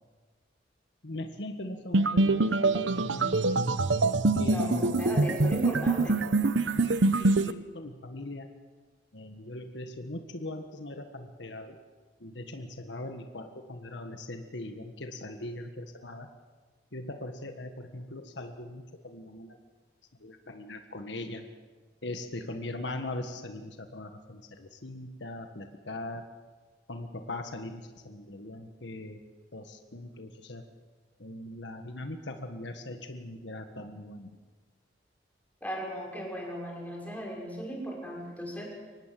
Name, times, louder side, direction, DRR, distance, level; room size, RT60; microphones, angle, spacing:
voice 1, 1.0-3.4 4.3-5.2 6.3-8.5 9.1-11.8 12.2-16.3 16.9-19.6 20.2-21.4 22.0-26.2 26.9-29.2 29.5-30.6 31.2-34.3, left 1 dB, 75° left, 6 dB, 1.6 m, -40 dB
sound 1, 1.9-7.5, right 3 dB, 85° right, 0.9 m, -25 dB
voice 2, 4.5-6.2 35.6-38.8, right 1 dB, 10° left, -2 dB, 5.9 m, -37 dB
24.0 x 19.0 x 7.7 m, 1.4 s
head